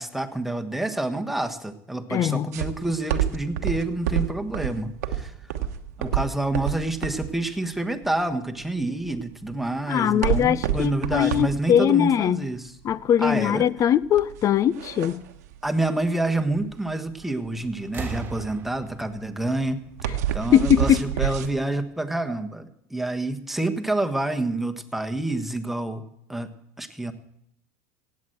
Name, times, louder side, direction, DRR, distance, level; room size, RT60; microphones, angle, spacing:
voice 1, 0.0-5.3 6.0-12.8 13.2-13.7 15.6-19.8 20.3-26.0 26.3-26.5 26.8-27.1, right 2 dB, 5° right, 1.3 m, -28 dB
voice 2, 2.1-2.5 9.9-12.4 12.8-15.2 20.5-21.0, left 10 dB, 40° left, 0.6 m, -21 dB
sound 1, 2.5-21.5, right 10 dB, 85° right, 1.2 m, -29 dB
sound 2, 17.2-17.5 17.8-20.6 21.7-21.8, right 4 dB, 25° right, 1.6 m, -38 dB
17.0 x 8.6 x 7.9 m
supercardioid pair, 100°, 9 cm